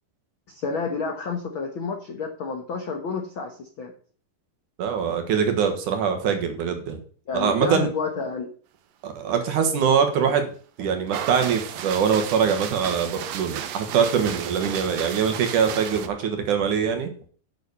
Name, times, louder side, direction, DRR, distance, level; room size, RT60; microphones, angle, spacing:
voice 1, 0.5-3.9 7.3-8.5, left 4 dB, 75° left, 2 dB, 1.1 m, -30 dB
voice 2, 4.8-7.0 7.3-7.9 9.0-10.5 10.8-17.1, right 7 dB, 65° right, 6 dB, 2.7 m, -23 dB
sound 1, 11.1-16.1, right 10 dB, 90° right, 1.5 m, -34 dB
9.6 x 6.3 x 6.7 m, 0.43 s
omnidirectional pair, 4.3 m